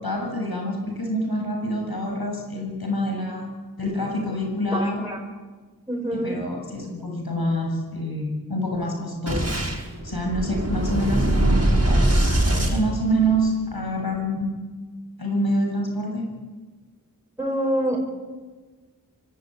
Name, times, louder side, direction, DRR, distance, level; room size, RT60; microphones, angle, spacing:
voice 1, 0.0-3.5 3.8-5.0 6.1-9.5 10.0-14.6 15.2-16.3, equal, 80° left, 1 dB, 7.4 m, -26 dB
voice 2, 4.7-5.2 5.9-6.4 17.4-18.0, right 1 dB, 10° right, -2 dB, 7.6 m, -26 dB
Boom, 9.3-13.6, right 1 dB, 40° right, 6.4 m, -22 dB
25.0 x 23.5 x 9.3 m, 1.4 s
wide cardioid pair, 45°, 37 cm